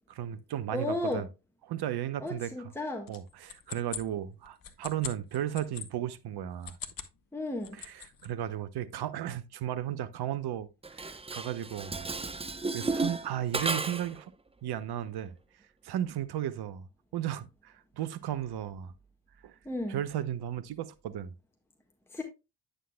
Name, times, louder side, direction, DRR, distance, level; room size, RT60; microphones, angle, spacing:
voice 1, 0.1-1.3 1.7-2.7 3.1-6.8 7.7-10.7 10.9-12.1 12.7-14.3 14.6-15.4 15.8-16.9 17.1-18.9 19.4-19.6 19.9-21.3, right 11 dB, 50° right, 0.8 m, -35 dB
voice 2, 0.7-1.3 2.2-3.1 7.3-7.8 19.6-20.0 22.1-22.2, left 1 dB, 5° left, 1.5 m, -33 dB
sound 1, 3.1-5.9 6.5-7.2 7.5-8.3, left 8 dB, 45° left, 1.1 m, -42 dB
Dishes pots and pans, 10.8-14.2, right 3 dB, 10° right, 0.6 m, -34 dB
9.1 x 6.5 x 2.2 m
hypercardioid pair, 45°, 49 cm